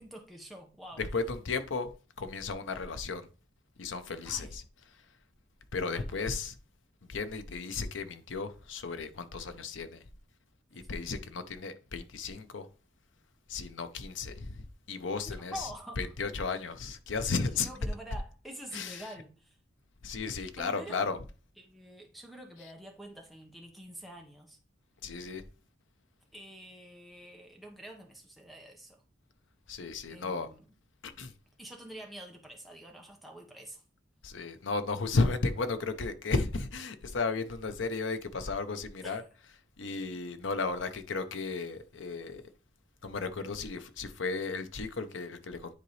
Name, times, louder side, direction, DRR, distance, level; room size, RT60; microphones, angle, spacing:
voice 1, 0.0-1.0 4.2-4.5 5.8-6.2 15.3-16.0 17.6-19.6 20.6-21.0 21.6-24.6 26.3-29.0 30.1-30.6 31.6-33.8 39.0-39.2, right 1 dB, ahead, 1.1 m, -47 dB
voice 2, 1.0-1.9 2.2-3.3 3.8-4.6 5.7-6.6 7.1-10.0 10.7-12.7 13.5-15.7 16.0-17.7 18.7-19.1 20.0-21.2 25.0-25.4 29.7-30.5 31.0-31.3 34.2-39.2 39.8-42.4 43.0-45.7, left 4 dB, 85° left, 0.7 m, -34 dB
9.6 x 3.9 x 3.2 m
head